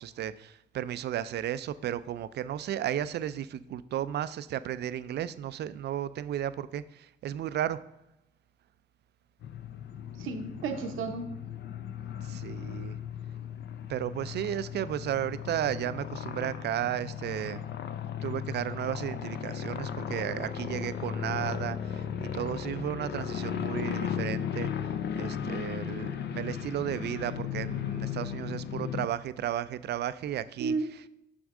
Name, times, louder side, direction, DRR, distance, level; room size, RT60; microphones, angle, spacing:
voice 1, 0.0-7.8 12.2-13.0 13.9-17.6 18.2-24.7 25.1-30.7, right 11 dB, 60° right, 15 dB, 0.4 m, -34 dB
sound 1, 9.4-29.1, left 8 dB, 60° left, 0.5 m, -36 dB
voice 2, 10.2-11.3 30.6-31.1, right 4 dB, 85° right, 6 dB, 0.8 m, -33 dB
6.3 x 6.0 x 3.6 m, 0.85 s
cardioid pair, 90°, 20 cm